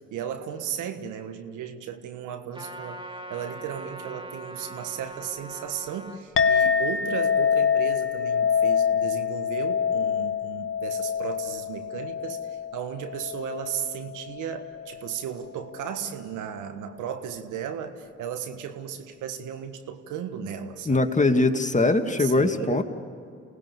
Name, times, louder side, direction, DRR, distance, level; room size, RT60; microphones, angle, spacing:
voice 1, 0.0-3.0 3.3-21.0 22.2-22.8, right 8 dB, 80° right, 8 dB, 1.6 m, -35 dB
Trumpet, 2.5-6.2, right 2 dB, 15° right, 3.0 m, -41 dB
Chink clink, 6.4-15.1, left 7 dB, 40° left, 1.4 m, -26 dB
voice 2, 20.9-22.8, left 2 dB, 25° left, 6 dB, 2.2 m, -21 dB
28.5 x 19.0 x 7.2 m, 2.5 s
hypercardioid pair, 40°, 30 cm